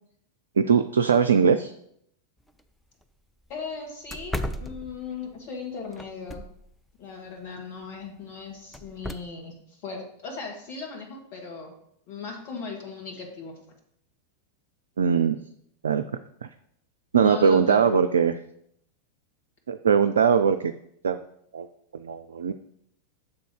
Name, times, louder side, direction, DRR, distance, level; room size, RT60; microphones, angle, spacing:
voice 1, 0.6-1.7 15.0-15.4 15.8-16.0 17.1-18.3 19.7-20.7 21.0-21.2 21.5-21.7 21.9-22.5, right 6 dB, 70° right, 8 dB, 0.3 m, -21 dB
sound 1, 2.5-2.6 3.0-3.1 3.5-3.6 4.1-5.3 5.9-6.7 8.7-9.1, equal, 5° left, 0.5 m, -35 dB
voice 2, 3.5-6.4 7.0-9.5 9.8-11.7 12.1-13.6 17.1-18.2, left 5 dB, 45° left, 1 dB, 1.9 m, -37 dB
7.1 x 3.9 x 6.4 m, 0.71 s
figure-of-eight pair, 90°, 0 cm